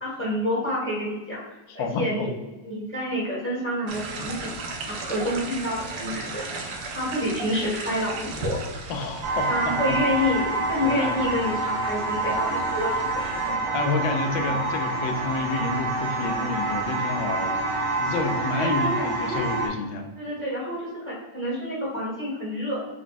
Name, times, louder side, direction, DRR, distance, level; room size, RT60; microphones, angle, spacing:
voice 1, 0.0-2.3 2.6-4.5 4.8-6.4 6.9-8.6 9.5-13.6 18.5-19.5 20.2-22.8, left 1 dB, 10° left, -7 dB, 0.9 m, -28 dB
voice 2, 1.7-2.3 8.9-10.0 10.8-11.3 13.7-20.1, left 3 dB, 75° left, 5 dB, 1.1 m, -29 dB
sound 1, 3.9-13.5, right 3 dB, 80° right, 0.8 m, -37 dB
sound 2, 9.2-19.7, right 2 dB, 60° right, 1.6 m, -27 dB
4.7 x 2.2 x 4.0 m, 1.1 s
omnidirectional pair, 2.4 m